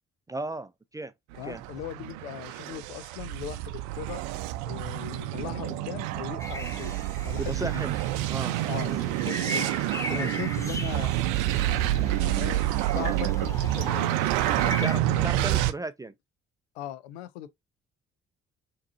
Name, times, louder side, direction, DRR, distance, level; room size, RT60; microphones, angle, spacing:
voice 1, 0.3-1.1 1.4-1.6 7.4-8.0 8.3-8.6 8.8-9.1 10.1-10.4 14.8-16.1, right 2 dB, 10° right, 0.4 m, -35 dB
sound 1, 1.3-15.7, right 15 dB, 65° right, 0.6 m, -28 dB
voice 2, 1.4-4.2 4.6-7.0 7.2-7.8 8.7-9.7 10.1-11.1 11.6-14.2 14.5-15.4 16.8-17.5, left 12 dB, 70° left, 0.6 m, -39 dB
sound 2, 6.4-15.0, equal, 10° left, 0.9 m, -39 dB
5.8 x 3.0 x 2.5 m
figure-of-eight pair, 45°, 33 cm